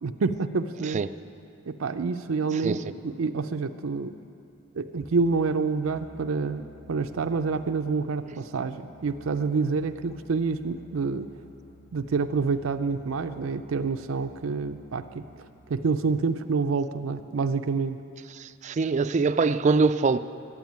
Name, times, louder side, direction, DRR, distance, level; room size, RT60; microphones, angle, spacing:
voice 1, 0.0-1.0 1.7-2.8 3.0-4.1 4.7-11.3 11.9-15.3 15.7-18.0, right 4 dB, 85° right, 0.5 m, -27 dB
Musical instrument, 5.0-15.8, left 2 dB, 35° left, 1.1 m, -53 dB
voice 2, 18.3-20.2, right 4 dB, 35° right, 0.3 m, -23 dB
12.0 x 9.1 x 9.3 m
head